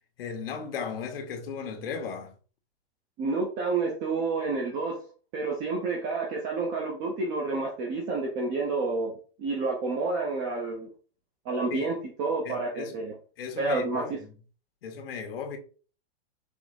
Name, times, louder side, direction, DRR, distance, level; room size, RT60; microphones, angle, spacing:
voice 1, 0.2-2.3 11.7-11.9 12.4-13.0 13.4-14.3 14.8-15.6, left 6 dB, 60° left, 1.8 m, -36 dB
voice 2, 3.2-5.0 5.3-10.9 11.4-13.1 13.6-14.2, right 3 dB, 15° right, 0.5 m, -29 dB
6.2 x 3.2 x 5.0 m
supercardioid pair, 175°, 32 cm